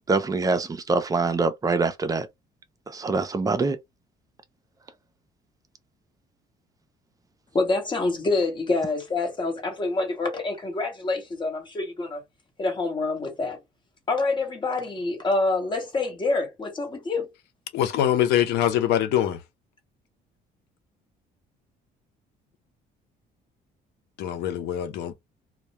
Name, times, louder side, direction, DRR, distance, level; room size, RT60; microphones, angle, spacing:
voice 1, 0.1-2.3 2.9-3.8, right 3 dB, 20° right, 0.5 m, -24 dB
voice 2, 7.5-12.2 12.6-13.6 14.1-17.3, left 3 dB, 30° left, 1.0 m, -26 dB
voice 3, 17.7-19.4 24.2-25.1, left 11 dB, 80° left, 0.6 m, -23 dB
2.2 x 2.1 x 2.8 m
cardioid pair, 110°, 17 cm